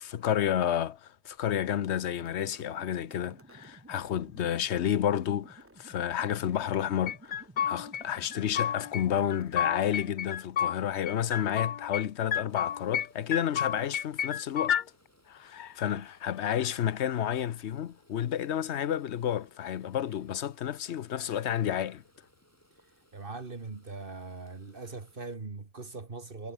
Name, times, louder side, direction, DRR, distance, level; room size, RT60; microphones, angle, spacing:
voice 1, 0.0-14.8 15.3-22.0, left 10 dB, 80° left, 1.1 m, -31 dB
sound 1, 1.4-10.4, right 2 dB, 15° right, 0.8 m, -54 dB
sound 2, 7.1-8.0 8.3-9.0 9.3-10.8 11.1-12.0 12.3-13.1 13.3-14.8, left 9 dB, 50° left, 0.7 m, -30 dB
sound 3, 12.5-25.4, equal, 15° left, 5.8 m, -65 dB
voice 2, 22.8-26.5, right 3 dB, 55° right, 2.0 m, -41 dB
omnidirectional pair, 1.1 m